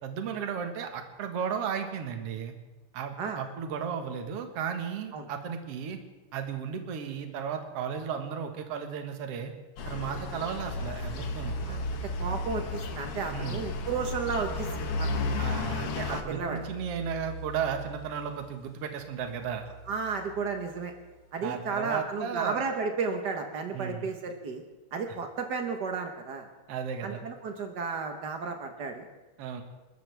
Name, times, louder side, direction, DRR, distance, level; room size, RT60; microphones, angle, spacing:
voice 1, 0.0-2.5 2.9-6.0 6.3-9.5 9.9-11.5 13.3-13.6 15.4-19.7 21.4-22.6 23.7-24.1 26.7-27.2 29.4-29.6, right 7 dB, 55° right, 5 dB, 2.2 m, -34 dB
sound 1, 9.8-16.2, left 4 dB, 55° left, 1.8 m, -34 dB
sound 2, 10.7-21.2, right 1 dB, 35° left, 1.8 m, -41 dB
voice 2, 12.2-15.4 16.1-16.6 19.9-20.9 21.3-24.6 24.9-26.5 27.0-29.1, right 5 dB, 75° right, 4 dB, 0.9 m, -33 dB
29.0 x 13.5 x 3.5 m, 1.2 s
omnidirectional pair, 3.9 m